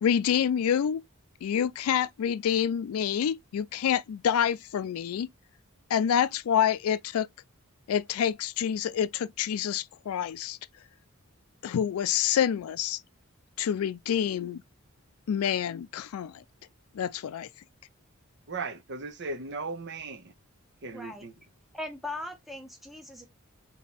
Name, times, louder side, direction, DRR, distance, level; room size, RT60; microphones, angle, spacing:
voice 1, 0.0-1.0 1.4-5.3 5.9-7.3 7.9-10.6 11.6-13.0 13.6-14.6 15.3-16.4 16.9-17.5, left 8 dB, 80° left, 0.3 m, -27 dB
voice 2, 18.5-20.3 20.8-21.3, right 3 dB, 55° right, 0.7 m, -37 dB
voice 3, 20.9-21.2 21.7-23.3, left 2 dB, ahead, 0.8 m, -39 dB
3.4 x 2.8 x 4.0 m
head